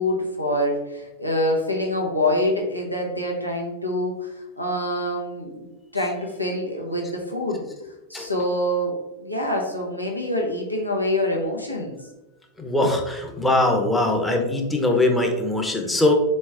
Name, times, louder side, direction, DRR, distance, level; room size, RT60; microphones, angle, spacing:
voice 1, 0.0-5.7 5.9-12.0, left 1 dB, 90° left, -2 dB, 0.7 m, -26 dB
voice 2, 12.6-16.1, left 2 dB, 5° left, 2 dB, 0.7 m, -21 dB
4.3 x 3.1 x 3.5 m, 0.99 s
figure-of-eight pair, 90°, 0 cm